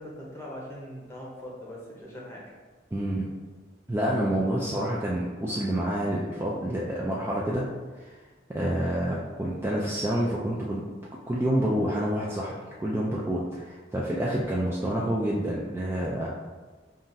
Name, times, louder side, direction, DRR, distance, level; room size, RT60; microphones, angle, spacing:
voice 1, 0.0-2.4, equal, 15° left, -4 dB, 0.8 m, -41 dB
voice 2, 2.9-3.3 3.9-7.6 8.0-8.1 8.5-10.8 11.3-12.5 12.8-16.3, right 1 dB, 15° right, -5 dB, 0.3 m, -28 dB
5.5 x 2.4 x 2.6 m, 1.3 s
head